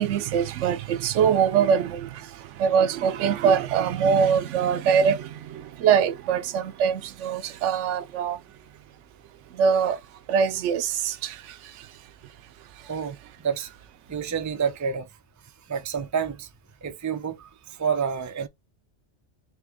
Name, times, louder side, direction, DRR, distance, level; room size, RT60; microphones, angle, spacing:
voice 1, 0.0-8.4 9.5-10.0 10.3-11.9 12.8-12.9, right 7 dB, 80° right, 0.9 m, -23 dB
voice 2, 14.1-15.1 15.7-16.5 16.8-18.5, right 6 dB, 25° right, 0.4 m, -28 dB
4.2 x 2.9 x 3.4 m
omnidirectional pair, 1.2 m